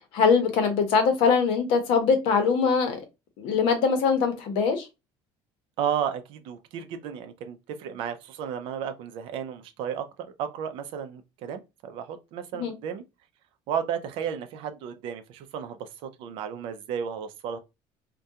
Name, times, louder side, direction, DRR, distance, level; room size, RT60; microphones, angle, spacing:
voice 1, 0.1-3.0 3.4-4.9 12.6-12.7, left 5 dB, 65° left, 0.7 m, -22 dB
voice 2, 5.8-10.1 10.4-13.0 13.7-17.6, right 8 dB, 60° right, 0.4 m, -33 dB
2.3 x 2.2 x 2.7 m
cardioid pair, 175°, 10 cm